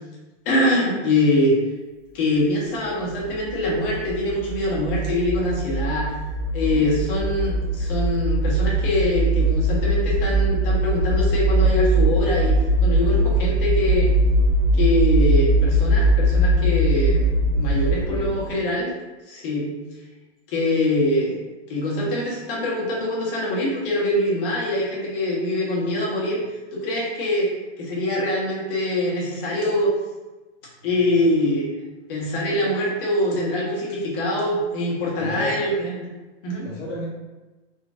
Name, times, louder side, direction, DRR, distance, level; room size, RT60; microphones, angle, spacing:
voice 1, 0.4-1.6 2.1-6.1 6.5-14.1 14.7-18.9 19.3-19.8 20.5-21.4 21.7-26.4 26.7-27.5 27.8-29.9 30.8-31.7 32.1-36.0 36.4-36.7, left 1 dB, 50° left, -4 dB, 1.4 m, -23 dB
sound 1, 3.2-18.5, right 1 dB, 60° right, 0.6 m, -21 dB
voice 2, 6.6-7.1 17.7-18.4 35.2-35.7 36.6-37.1, left 2 dB, 85° left, -4 dB, 1.5 m, -34 dB
3.9 x 2.9 x 2.5 m, 1.1 s
hypercardioid pair, 145°, 36 cm